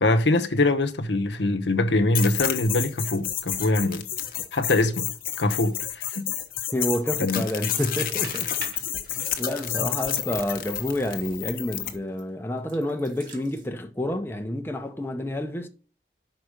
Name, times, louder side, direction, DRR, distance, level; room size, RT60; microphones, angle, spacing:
voice 1, 0.0-4.0 4.5-5.1 5.4-6.3 7.2-7.4, left 2 dB, 85° left, 0.9 m, -23 dB
sound 1, 2.2-12.0, left 11 dB, 50° left, 1.0 m, -30 dB
voice 2, 6.7-8.5 9.4-15.7, left 1 dB, 15° left, 0.8 m, -29 dB
sound 2, 7.1-7.3 7.7-10.7 11.0-11.1 11.8-12.2 12.6-13.7, right 3 dB, 45° right, 2.3 m, -41 dB
5.8 x 5.0 x 6.5 m
head